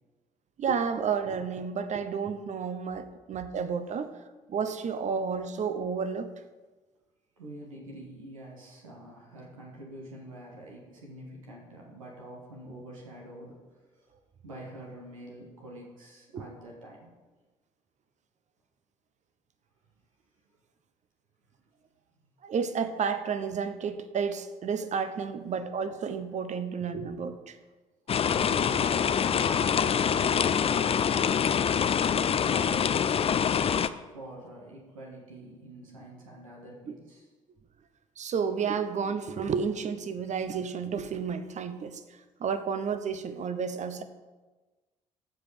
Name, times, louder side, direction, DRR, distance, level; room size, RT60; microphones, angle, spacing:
voice 1, 0.6-4.1 4.5-6.3 16.3-16.4 22.4-27.6 38.2-42.0 42.4-44.0, right 6 dB, 45° right, 11 dB, 0.9 m, -31 dB
voice 2, 7.4-13.6 13.9-14.1 14.4-17.1 25.2-25.4 28.3-31.8 32.4-33.7 34.1-37.3, right 1 dB, 85° right, -2 dB, 1.6 m, -46 dB
sound 1, 28.1-33.9, left 7 dB, 35° left, 0.5 m, -25 dB
15.0 x 5.2 x 4.9 m, 1.3 s
figure-of-eight pair, 45°, 17 cm